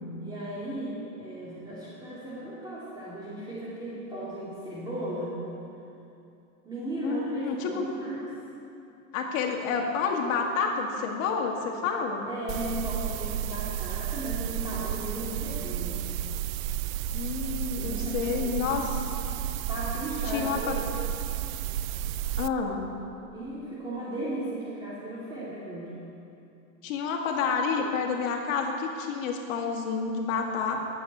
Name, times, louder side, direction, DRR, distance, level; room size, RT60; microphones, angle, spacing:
voice 1, 0.1-5.4 6.6-8.3 12.3-16.0 17.7-19.0 19.6-20.7 23.3-25.9, right 1 dB, 10° right, -10 dB, 2.4 m, -36 dB
voice 2, 7.0-7.8 9.1-12.3 17.1-19.0 20.3-20.8 22.4-22.9 26.8-30.8, left 5 dB, 70° left, 1 dB, 2.1 m, -29 dB
sound 1, 12.5-22.5, right 11 dB, 75° right, 0.5 m, -32 dB
11.5 x 8.4 x 8.0 m, 2.7 s
supercardioid pair, 150°, 41 cm